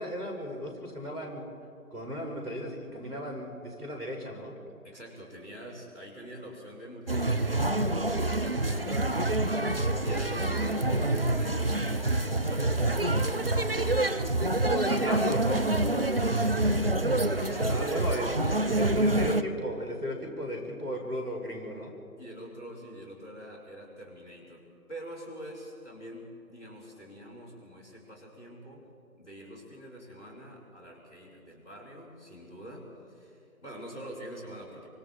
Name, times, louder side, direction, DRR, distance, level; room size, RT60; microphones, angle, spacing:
voice 1, 0.0-1.4 1.9-4.6 10.6-10.7 14.7-16.2 17.6-18.3 18.7-21.9, equal, 80° right, 2 dB, 5.6 m, -35 dB
voice 2, 4.8-14.3 14.5-14.9 15.4-15.7 16.2-18.0 22.2-28.9 29.1-34.9, equal, 10° left, -7 dB, 3.4 m, -45 dB
sound 1, 7.1-19.4, right 2 dB, 40° right, 0.5 m, -27 dB
25.0 x 25.0 x 4.5 m, 2.5 s
figure-of-eight pair, 155°, 45 cm